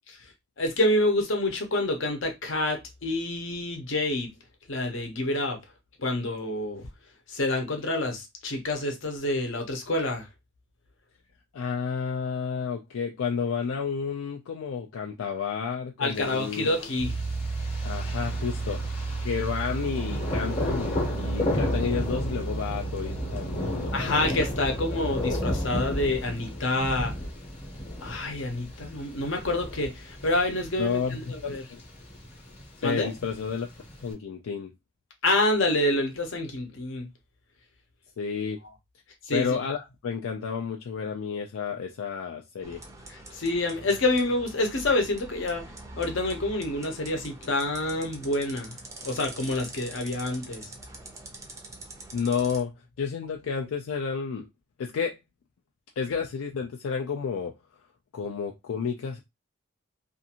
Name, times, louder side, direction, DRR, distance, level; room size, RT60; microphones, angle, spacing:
voice 1, 0.6-4.3 4.7-5.6 6.0-6.9 7.3-10.3 16.0-17.2 23.9-27.1 28.0-31.6 32.8-33.1 35.2-37.1 39.2-39.5 43.1-45.6 46.0-48.8 49.0-50.7, left 2 dB, 65° left, 0.8 m, -27 dB
voice 2, 11.5-16.7 17.8-18.8 19.2-24.4 30.8-31.2 31.4-31.8 32.8-33.7 34.0-34.7 38.2-38.6 39.3-42.8 52.1-52.7 53.0-54.5 54.8-55.2 56.0-57.5 58.1-59.2, left 6 dB, 90° left, 0.4 m, -31 dB
Thunder, 16.1-34.1, left 1 dB, 30° left, 0.8 m, -34 dB
sound 1, 17.0-25.6, right 4 dB, 70° right, 0.5 m, -33 dB
sound 2, 42.6-52.6, right 2 dB, 15° right, 0.4 m, -44 dB
2.5 x 2.5 x 2.8 m
head